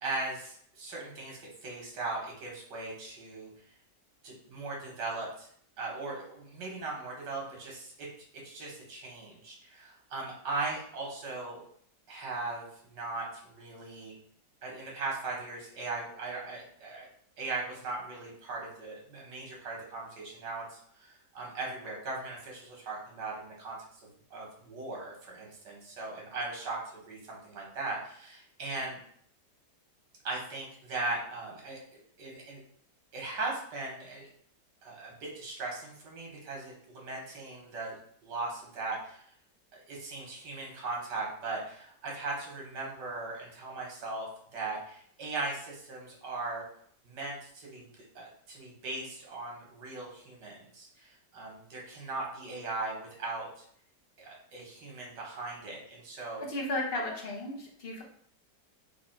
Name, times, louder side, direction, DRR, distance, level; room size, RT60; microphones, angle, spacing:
voice 1, 0.0-3.6 4.2-5.5 5.8-8.1 8.3-11.6 12.1-14.1 14.6-17.1 17.4-24.0 24.3-29.0 30.2-32.6 33.1-34.3 34.8-39.3 39.9-46.7 47.0-47.9 48.2-53.5 54.2-56.4, right 3 dB, 80° right, -2 dB, 1.9 m, -39 dB
voice 2, 56.4-58.0, left 1 dB, 40° left, -1 dB, 0.9 m, -34 dB
4.1 x 2.6 x 4.4 m, 0.64 s
omnidirectional pair, 1.9 m